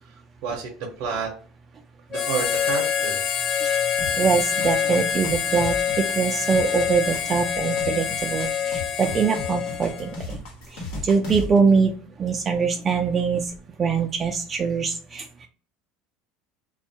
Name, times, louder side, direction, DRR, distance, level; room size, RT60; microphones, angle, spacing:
voice 1, 0.1-1.3 2.1-3.3, right 5 dB, 65° right, 1 dB, 0.7 m, -30 dB
Harmonica, 2.1-10.2, left 8 dB, 40° left, 0.5 m, -26 dB
sound 1, 4.0-11.6, left 2 dB, 75° left, 1.0 m, -36 dB
voice 2, 4.2-5.7 6.2-10.1 11.0-11.9 12.2-13.4 13.8-15.5, right 5 dB, 30° right, 4 dB, 0.3 m, -23 dB
2.4 x 2.2 x 2.7 m, 0.41 s
supercardioid pair, 115°, 0 cm